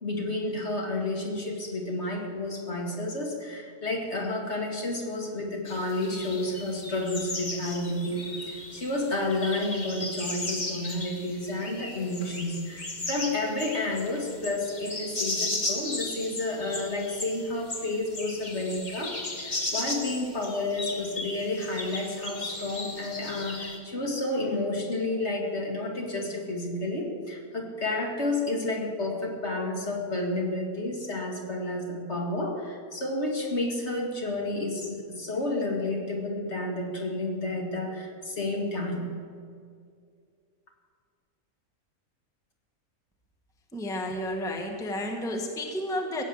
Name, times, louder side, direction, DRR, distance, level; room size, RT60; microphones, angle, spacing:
voice 1, 0.0-39.1, left 2 dB, 45° left, 1 dB, 2.3 m, -31 dB
sound 1, 5.7-23.8, left 2 dB, 30° left, 1.6 m, -36 dB
voice 2, 43.7-46.2, left 1 dB, 5° left, 3 dB, 1.0 m, -31 dB
16.0 x 8.4 x 7.6 m, 2.2 s
omnidirectional pair, 1.6 m